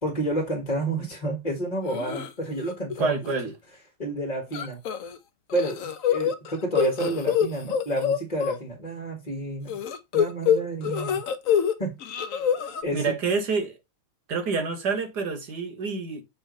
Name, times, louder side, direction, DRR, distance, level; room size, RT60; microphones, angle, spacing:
voice 1, 0.0-3.2 4.0-4.8 5.5-9.8 10.1-11.2 11.8-11.9 12.8-13.0, right 2 dB, 20° left, 1.7 m, -30 dB
sound 1, 1.9-2.3 2.7-3.0 3.3-3.4 4.5-5.2 5.5-8.6 9.7-11.7 12.0-12.8, left 8 dB, 65° left, 0.8 m, -25 dB
voice 2, 3.0-3.5 10.9-11.0 12.9-13.8 14.3-16.2, right 4 dB, 50° right, 2.0 m, -27 dB
8.0 x 3.6 x 5.2 m
omnidirectional pair, 2.4 m